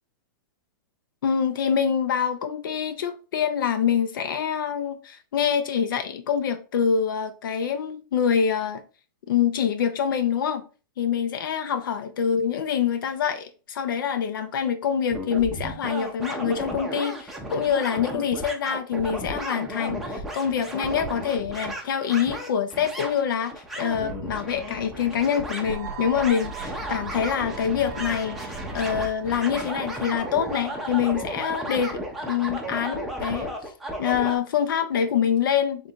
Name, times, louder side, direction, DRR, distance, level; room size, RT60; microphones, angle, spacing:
voice 1, 1.2-8.8 9.3-10.6 11.0-33.7 34.0-35.9, left 8 dB, 70° left, 0.6 m, -25 dB
sound 1, 15.1-34.4, right 1 dB, ahead, 0.6 m, -34 dB
sound 2, 25.6-32.3, right 7 dB, 55° right, 0.7 m, -41 dB
3.8 x 2.6 x 4.3 m
hypercardioid pair, 160°, 12 cm